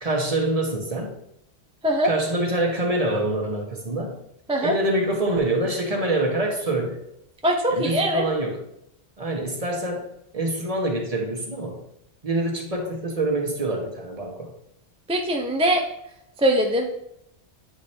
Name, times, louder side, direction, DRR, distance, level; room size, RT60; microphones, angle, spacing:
voice 1, 0.0-1.2 2.0-4.2 4.6-7.0 7.7-8.6 9.2-10.0 10.3-11.8 12.2-14.5, right 1 dB, 35° right, 1 dB, 1.2 m, -25 dB
voice 2, 7.4-8.2 15.1-15.8 16.4-16.9, equal, 5° right, 1 dB, 0.5 m, -21 dB
8.6 x 3.3 x 4.3 m, 0.79 s
omnidirectional pair, 1.1 m